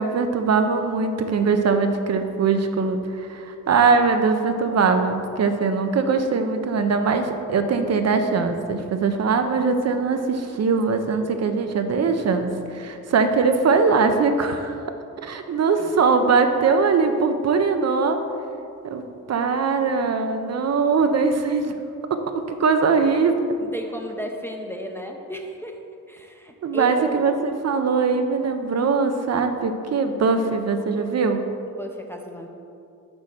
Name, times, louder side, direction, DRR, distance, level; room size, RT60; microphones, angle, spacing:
voice 1, 0.0-14.8 15.2-18.2 18.8-19.0 19.3-21.7 22.1-22.2 22.5-23.4 26.6-31.4, right 4 dB, 50° right, 7 dB, 0.5 m, -21 dB
voice 2, 23.6-25.8 26.1-27.2 31.8-32.5, equal, 5° left, 2 dB, 0.5 m, -34 dB
6.2 x 4.1 x 6.4 m, 2.6 s
wide cardioid pair, 150°, 33 cm